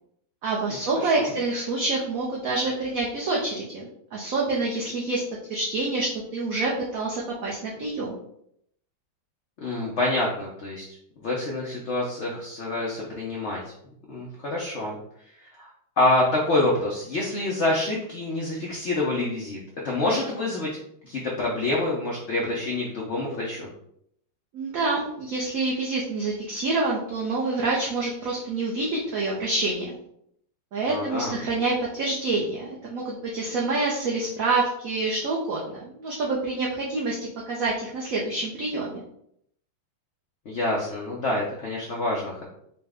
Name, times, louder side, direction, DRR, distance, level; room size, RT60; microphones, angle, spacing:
voice 1, 0.4-5.2 5.5-8.2 24.5-30.0 30.7-37.2 37.5-39.0, right 3 dB, 65° right, -3 dB, 0.9 m, -27 dB
voice 2, 1.0-1.3 9.6-11.0 11.2-13.6 14.1-15.0 15.4-15.7 16.0-19.6 19.8-20.8 21.0-23.7 30.9-31.3 40.5-42.5, left 2 dB, 90° left, -3 dB, 0.6 m, -27 dB
4.1 x 2.1 x 3.4 m, 0.73 s
omnidirectional pair, 2.0 m